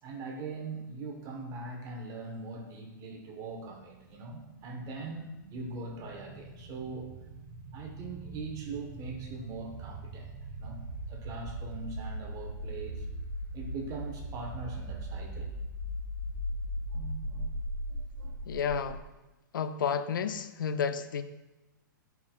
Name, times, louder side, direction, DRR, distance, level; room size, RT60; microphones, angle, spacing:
voice 1, 0.0-7.1 7.7-10.3 10.6-10.8 11.1-13.1 13.5-15.5 16.9-17.6 17.9-18.6 18.9-19.0, right 3 dB, 30° right, 2 dB, 1.2 m, -41 dB
sound 1, 3.2-19.0, equal, 55° right, 1.1 m, -40 dB
voice 2, 18.5-19.0 19.5-21.2, left 7 dB, 75° left, 10 dB, 0.5 m, -31 dB
11.0 x 4.6 x 2.5 m, 1.0 s
hypercardioid pair, 120°, 11 cm